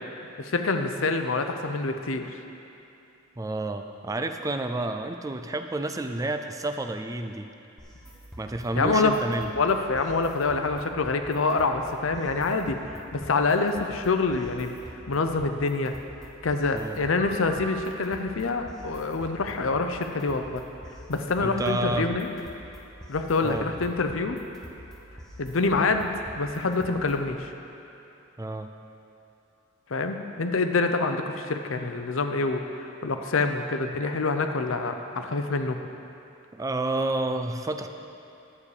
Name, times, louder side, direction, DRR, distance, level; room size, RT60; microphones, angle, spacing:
voice 1, 0.4-2.3 8.8-9.1 9.5-12.8 13.1-14.7 15.1-15.9 16.4-20.6 21.1-22.3 23.1-24.4 25.4-27.5 29.9-35.8, left 3 dB, 75° left, 6 dB, 0.7 m, -26 dB
voice 2, 3.4-7.5 8.4-9.5 16.7-17.0 21.4-22.1 23.4-23.7 28.4-28.7 36.5-37.9, right 2 dB, 15° right, 7 dB, 0.4 m, -30 dB
sound 1, 7.8-27.3, equal, 5° left, 1.2 m, -46 dB
sound 2, 17.2-19.3, right 2 dB, 50° left, 1.2 m, -45 dB
11.0 x 8.5 x 4.9 m, 2.8 s
head